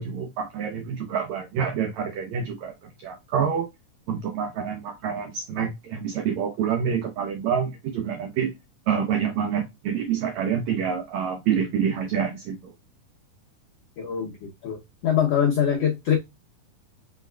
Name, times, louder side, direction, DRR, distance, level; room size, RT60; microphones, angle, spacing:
voice 1, 0.0-2.7 3.0-3.7 4.1-8.5 8.9-12.7, right 7 dB, 85° right, 1.5 m, -27 dB
voice 2, 14.0-16.2, left 8 dB, 90° left, 1.4 m, -24 dB
5.2 x 4.2 x 2.2 m
omnidirectional pair, 4.2 m